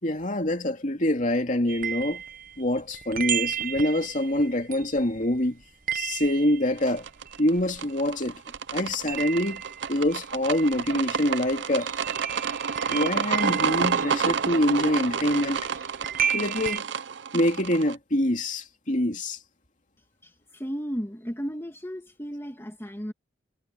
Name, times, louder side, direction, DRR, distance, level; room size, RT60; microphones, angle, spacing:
voice 1, 0.0-2.2 2.6-5.6 5.9-7.1 7.4-8.4 8.7-9.6 9.9-11.9 12.9-15.7 16.3-16.8 17.3-19.4, left 1 dB, 45° left, 2.7 m, -25 dB
sound 1, 1.7-8.3 8.5-16.8, right 8 dB, 50° right, 1.1 m, -34 dB
sound 2, 6.8-17.9, right 6 dB, 85° right, 0.7 m, -29 dB
voice 2, 20.2-23.1, equal, 15° left, 2.0 m, -34 dB
head